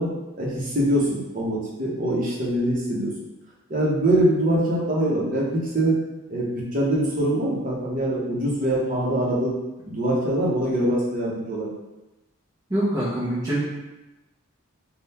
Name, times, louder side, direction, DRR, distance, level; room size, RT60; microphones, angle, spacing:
voice 1, 0.0-3.1 3.7-6.0 6.3-9.5 9.9-11.7, right 1 dB, 40° right, -5 dB, 0.9 m, -23 dB
voice 2, 12.7-13.6, right 1 dB, 15° right, -9 dB, 0.7 m, -24 dB
3.7 x 2.3 x 4.2 m, 1.0 s
head